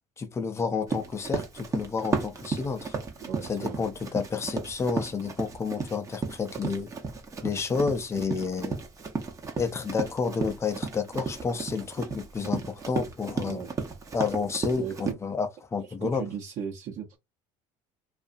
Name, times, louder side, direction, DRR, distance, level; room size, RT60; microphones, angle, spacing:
voice 1, 0.2-3.0 3.4-6.9 7.4-8.8 9.6-13.6 14.1-16.3, left 5 dB, 20° left, 0.4 m, -30 dB
Run, 0.9-15.1, right 4 dB, 20° right, 0.6 m, -34 dB
voice 2, 3.3-3.9 13.4-13.7 14.8-15.1 16.0-17.2, right 8 dB, 55° right, 0.9 m, -36 dB
2.7 x 2.4 x 2.5 m
cardioid pair, 135°, 15 cm